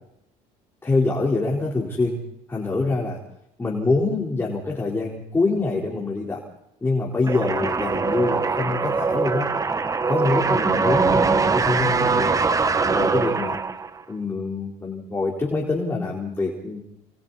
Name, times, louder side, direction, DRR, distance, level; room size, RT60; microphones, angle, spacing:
voice 1, 0.8-2.2 2.5-3.2 3.6-6.4 6.8-9.5 10.1-12.3 12.9-13.6 14.1-16.8, left 3 dB, 15° left, -3 dB, 4.1 m, -25 dB
sound 1, 7.3-14.0, right 4 dB, 20° right, 1.2 m, -22 dB
29.5 x 27.0 x 4.2 m, 0.80 s
cardioid pair, 115°, 16 cm